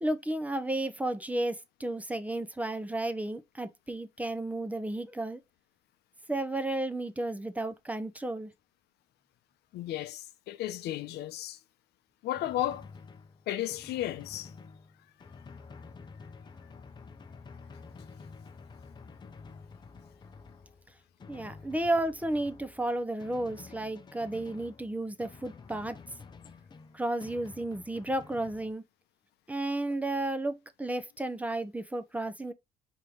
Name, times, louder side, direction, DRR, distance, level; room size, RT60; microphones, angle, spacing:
voice 1, 0.0-5.4 6.3-8.5 21.3-26.0 26.9-28.8 29.5-32.5, right 1 dB, 10° right, 0.6 m, -33 dB
voice 2, 9.7-11.6 12.2-12.9 13.5-14.5, left 13 dB, 75° left, 0.7 m, -34 dB
Drum, 12.3-28.7, left 4 dB, 25° left, 0.7 m, -50 dB
4.6 x 3.6 x 3.2 m
cardioid pair, 110°, 17 cm